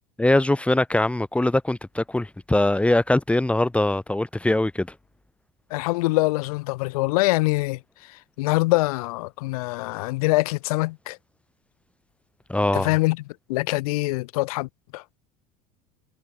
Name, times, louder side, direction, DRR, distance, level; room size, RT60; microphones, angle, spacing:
voice 1, 0.2-4.9 12.5-12.9, left 1 dB, 5° left, 1.2 m, -22 dB
voice 2, 5.7-7.8 8.4-11.2 12.7-13.2 13.5-15.0, left 22 dB, 70° left, 1.4 m, -24 dB
hypercardioid pair, 75°, 20 cm